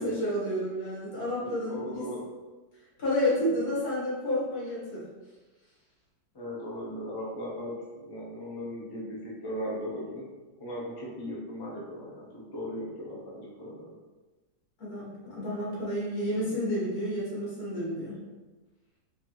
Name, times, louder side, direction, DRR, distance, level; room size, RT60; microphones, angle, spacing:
voice 1, 0.0-2.0 3.0-5.0 14.8-18.2, left 1 dB, 60° left, -7 dB, 1.9 m, -30 dB
voice 2, 1.4-2.3 6.3-7.7 8.0-10.2 10.6-12.3 12.5-13.9, equal, 35° left, -5 dB, 0.3 m, -37 dB
4.5 x 2.7 x 3.0 m, 1.2 s
omnidirectional pair, 1.9 m